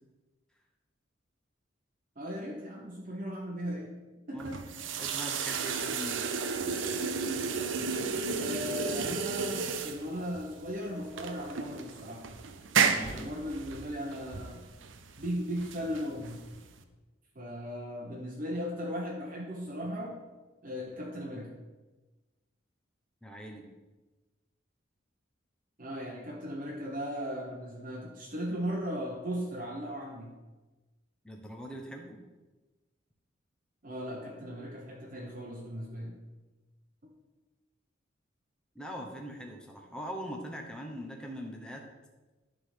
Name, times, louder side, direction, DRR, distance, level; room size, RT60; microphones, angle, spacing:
voice 1, 2.2-4.0 4.3-4.8 8.4-12.3 12.9-14.6 15.2-16.4 17.3-20.2 20.6-21.5 25.8-30.3 33.8-36.2 37.0-37.1, equal, 45° right, -3 dB, 1.1 m, -37 dB
voice 2, 4.3-4.7 5.0-6.3 12.9-13.3 23.2-23.6 31.2-32.2 38.7-41.8, equal, 5° left, 0 dB, 1.0 m, -42 dB
sound 1, 4.4-16.8, right 5 dB, 90° right, 0.7 m, -33 dB
11.0 x 3.9 x 6.6 m, 1.2 s
head